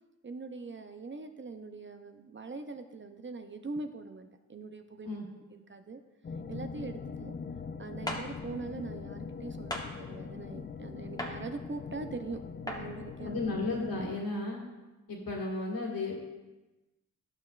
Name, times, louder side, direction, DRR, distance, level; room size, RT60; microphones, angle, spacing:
voice 1, 0.2-5.1 5.3-6.0 6.5-7.4 7.8-13.3, right 3 dB, 35° right, 7 dB, 0.5 m, -42 dB
sound 1, 6.2-14.2, left 5 dB, 30° left, 0.4 m, -42 dB
sound 2, 8.1-8.2 9.7-9.9 11.2-11.3 12.7-12.8, left 1 dB, 10° left, 0.9 m, -35 dB
voice 2, 13.3-14.6 15.1-16.2, left 2 dB, 75° left, -2 dB, 1.9 m, -34 dB
11.5 x 6.7 x 2.4 m, 1.1 s
wide cardioid pair, 95°, 35 cm